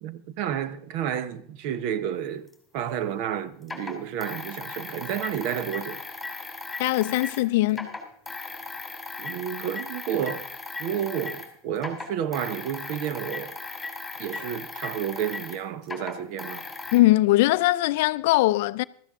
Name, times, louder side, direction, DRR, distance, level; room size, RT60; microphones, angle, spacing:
voice 1, 0.0-6.0 9.2-10.5 10.8-13.6 14.2-16.7, right 9 dB, 60° right, 0.9 m, -31 dB
sound 1, 2.5-2.6 3.6-7.4 7.7-11.5 11.8-17.0, left 3 dB, 5° left, 2.8 m, -37 dB
voice 2, 6.8-7.9 16.9-18.8, left 18 dB, 70° left, 0.4 m, -21 dB
15.5 x 13.0 x 3.6 m
supercardioid pair, 115°, 0 cm